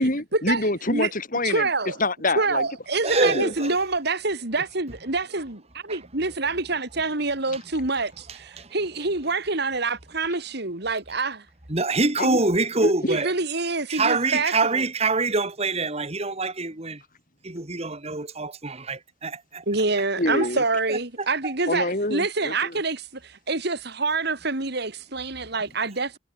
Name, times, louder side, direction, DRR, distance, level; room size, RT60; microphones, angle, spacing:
voice 1, 0.0-1.7 2.0-2.7 3.1-3.7 12.2-12.4 12.8-12.9 20.2-20.6 21.7-22.7, left 2 dB, 45° left, 6.4 m, -26 dB
voice 2, 1.4-2.0 2.4-11.4 13.1-14.9 19.7-26.2, right 3 dB, 55° right, 3.1 m, -26 dB
voice 3, 3.0-3.7 5.9-6.0 8.3-8.7 11.7-13.3 13.9-17.0 17.4-19.6 20.9-21.0 21.4-21.5, right 3 dB, 30° right, 2.4 m, -25 dB
head